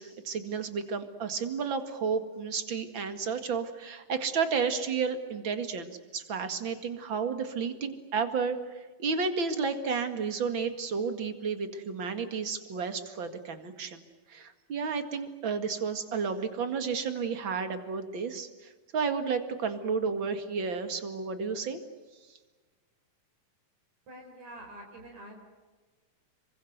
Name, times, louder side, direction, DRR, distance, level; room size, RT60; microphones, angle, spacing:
voice 1, 0.0-14.0 14.3-21.8, right 5 dB, 40° right, 8 dB, 2.3 m, -32 dB
voice 2, 24.1-25.4, right 1 dB, 55° right, 2 dB, 5.8 m, -46 dB
27.5 x 24.0 x 8.1 m, 1.3 s
omnidirectional pair, 3.8 m